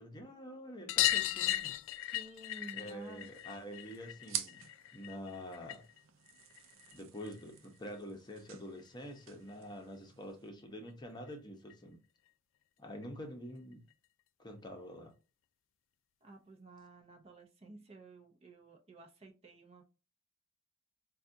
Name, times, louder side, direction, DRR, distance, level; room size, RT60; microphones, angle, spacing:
voice 1, 0.0-1.8 2.7-4.6 4.9-5.8 6.9-12.0 12.8-13.8 14.4-15.1, equal, 20° left, 0.8 m, -47 dB
sound 1, 0.9-6.0 6.3-7.4 8.8-8.9 9.1-9.2 9.5-9.6 10.9-11.0 11.3-11.4 11.7-11.8 13.0-13.1 13.9-14.0, left 14 dB, 65° left, 0.3 m, -36 dB
voice 2, 2.1-3.3 16.2-19.8, right 2 dB, 30° right, 0.6 m, -53 dB
sound 2, 2.9-10.5, right 9 dB, 70° right, 0.6 m, -48 dB
4.7 x 2.3 x 2.6 m
head